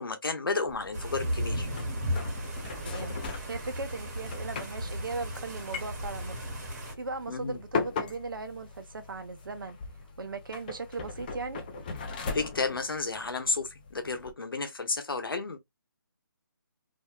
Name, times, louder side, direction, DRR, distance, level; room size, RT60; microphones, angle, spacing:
voice 1, 0.0-1.7 7.3-7.6 12.3-15.6, left 4 dB, 85° left, 0.8 m, -32 dB
sound 1, 0.7-14.3, left 4 dB, 25° left, 0.4 m, -40 dB
sound 2, 0.9-6.9, equal, 45° right, 1.3 m, -35 dB
voice 2, 2.7-3.1 3.4-6.4 7.0-9.8 10.2-11.6, right 3 dB, 70° right, 0.7 m, -38 dB
2.6 x 2.1 x 2.2 m
figure-of-eight pair, 155°, 12 cm